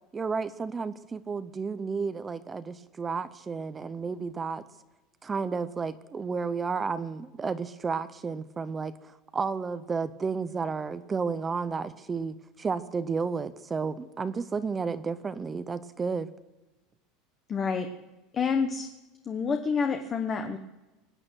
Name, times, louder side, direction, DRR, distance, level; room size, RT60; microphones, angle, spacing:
voice 1, 0.1-4.6 5.2-16.3, right 5 dB, 15° right, 14 dB, 0.6 m, -32 dB
voice 2, 17.5-17.9 18.3-18.9 19.3-20.6, left 5 dB, 20° left, 5 dB, 1.0 m, -28 dB
25.0 x 9.0 x 6.3 m, 1.1 s
supercardioid pair, 165°, 0 cm